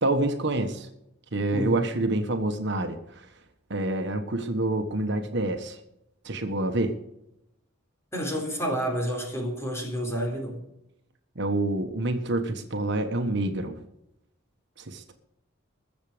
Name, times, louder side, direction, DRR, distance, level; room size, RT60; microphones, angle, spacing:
voice 1, 0.0-0.9 1.3-3.2 3.7-5.8 6.2-6.9 11.3-13.8 14.9-15.1, right 2 dB, 60° right, 5 dB, 1.4 m, -27 dB
voice 2, 1.5-1.9 8.1-10.6, equal, 15° left, 1 dB, 4.0 m, -29 dB
21.5 x 7.5 x 5.1 m, 0.84 s
head